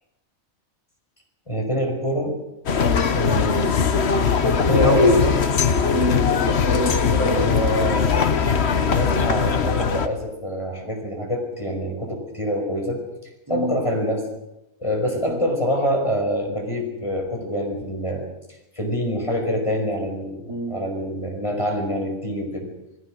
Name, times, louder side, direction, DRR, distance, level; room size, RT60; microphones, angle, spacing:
voice 1, 1.5-2.4 3.1-3.8 4.4-5.4 7.2-8.3 8.8-13.1 13.5-14.3 14.8-18.3 18.8-22.7, equal, 20° left, 2 dB, 5.2 m, -25 dB
sound 1, 2.7-10.1, left 6 dB, 50° left, 1.3 m, -20 dB
voice 2, 2.8-3.1 4.6-5.2 5.9-7.8 13.5-13.8 15.3-15.4 20.5-20.8, left 1 dB, 15° right, 2 dB, 3.6 m, -24 dB
28.5 x 18.0 x 6.4 m, 0.89 s
omnidirectional pair, 1.5 m